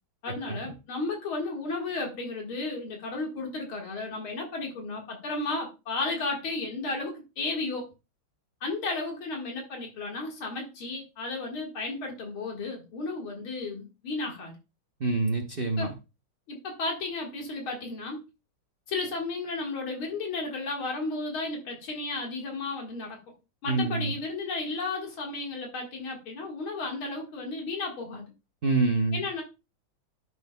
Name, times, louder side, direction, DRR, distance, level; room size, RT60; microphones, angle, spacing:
voice 1, 0.2-7.9 8.6-14.5 15.8-15.9 16.5-18.2 18.9-23.2 23.6-28.3 29.1-29.4, left 3 dB, 75° left, 1 dB, 2.6 m, -33 dB
voice 2, 15.0-15.9 23.7-24.1 28.6-29.2, right 3 dB, 45° right, 2 dB, 0.7 m, -26 dB
12.5 x 6.3 x 2.3 m, 0.28 s
omnidirectional pair, 2.3 m